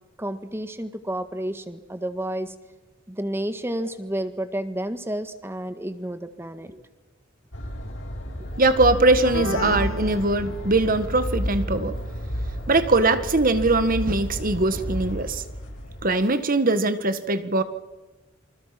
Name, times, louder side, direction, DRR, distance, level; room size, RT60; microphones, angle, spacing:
voice 1, 0.2-2.5 3.1-6.8, right 1 dB, 10° right, 10 dB, 1.6 m, -31 dB
sound 1, 7.5-16.1, equal, 70° left, 7.2 m, -32 dB
voice 2, 8.6-11.9 12.7-15.4 16.0-17.6, right 2 dB, 45° right, 11 dB, 1.7 m, -21 dB
sound 2, 9.2-11.1, left 3 dB, 85° left, 1.8 m, -32 dB
28.0 x 26.0 x 6.0 m, 1.1 s
head